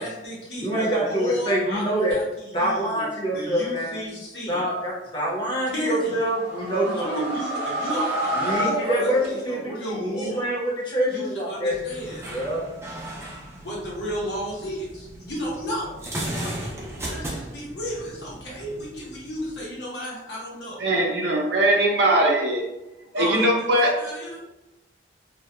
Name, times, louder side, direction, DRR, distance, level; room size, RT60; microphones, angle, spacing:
voice 1, 0.0-3.1 3.3-4.7 5.7-6.2 6.9-10.5 11.1-12.3 13.6-15.9 17.0-20.8 23.1-24.4, equal, 70° left, -6 dB, 0.8 m, -33 dB
voice 2, 0.6-2.2 2.5-4.0 4.5-7.3 8.3-11.8 12.3-12.6, right 1 dB, 25° left, -5 dB, 0.7 m, -26 dB
sound 1, 6.1-9.8, right 1 dB, 35° right, 0.8 m, -28 dB
sound 2, 11.7-19.7, right 1 dB, 15° right, 0.4 m, -36 dB
voice 3, 20.8-22.6 23.1-23.9, right 1 dB, 65° right, -1 dB, 0.6 m, -20 dB
2.3 x 2.1 x 2.8 m, 0.96 s
head